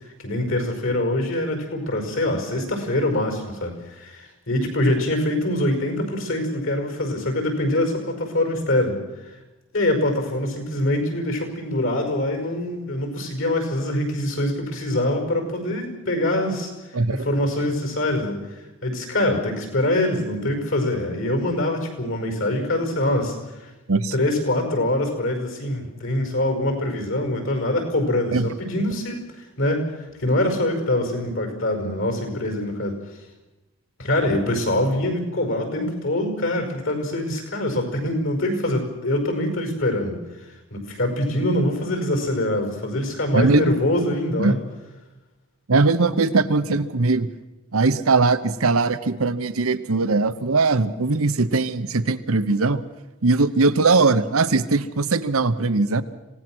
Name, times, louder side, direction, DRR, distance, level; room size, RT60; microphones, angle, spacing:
voice 1, 0.2-9.0 9.7-18.4 18.8-23.7 24.1-29.9 30.2-33.0 34.0-40.2 40.7-44.6, left 1 dB, 65° left, 5 dB, 5.3 m, -24 dB
voice 2, 16.9-17.2 23.9-24.1 28.3-28.5 43.3-43.7 44.4-44.6 45.7-47.3 47.7-52.8 53.2-56.0, right 3 dB, 75° right, 12 dB, 0.9 m, -20 dB
26.5 x 17.5 x 6.2 m, 1.0 s
head